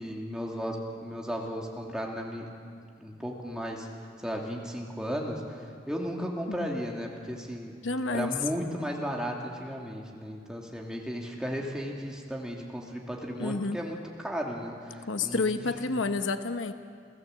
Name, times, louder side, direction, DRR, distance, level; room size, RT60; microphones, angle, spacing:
voice 1, 0.0-2.5 3.0-3.9 4.2-7.7 8.1-16.0, equal, 5° right, -1 dB, 2.5 m, -35 dB
voice 2, 7.8-8.3 13.4-13.8 15.1-16.7, left 3 dB, 85° left, 9 dB, 1.0 m, -29 dB
29.0 x 16.5 x 7.9 m, 2.3 s
head